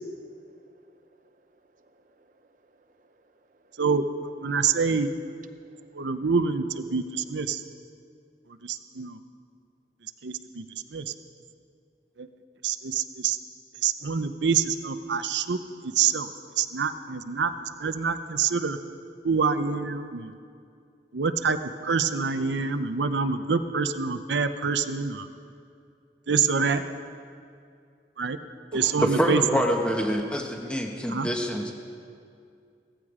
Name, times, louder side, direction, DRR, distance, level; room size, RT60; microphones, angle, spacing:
voice 1, 1.8-3.8 5.7-5.9, right 2 dB, 45° right, 8 dB, 0.7 m, -64 dB
voice 2, 3.8-5.1 5.9-7.6 8.5-9.2 10.0-11.1 12.2-12.3 12.6-13.4 13.8-16.3 16.6-18.8 19.2-20.3 21.1-21.6 21.8-25.3 26.3-26.8 28.2-28.4 28.7-29.6 31.1-31.3, right 5 dB, 90° right, 10 dB, 0.7 m, -26 dB
voice 3, 28.9-31.7, equal, 5° left, 2 dB, 1.1 m, -26 dB
15.5 x 15.0 x 5.0 m, 2.4 s
head